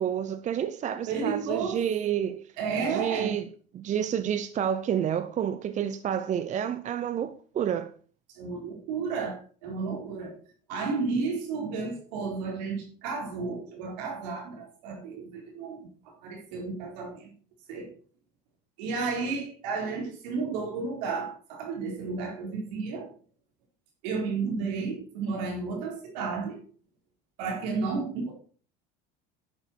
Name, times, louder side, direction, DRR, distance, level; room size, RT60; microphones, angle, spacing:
voice 1, 0.0-2.4 2.9-3.5 3.7-7.9, right 9 dB, 35° right, 0.8 m, -29 dB
voice 2, 1.1-1.8 2.6-3.3 8.3-10.3 10.7-17.3 17.7-17.9 18.8-23.1 24.0-26.6 27.4-28.3, right 4 dB, 80° right, 4.6 m, -32 dB
11.0 x 7.5 x 4.6 m
supercardioid pair, 110°, 21 cm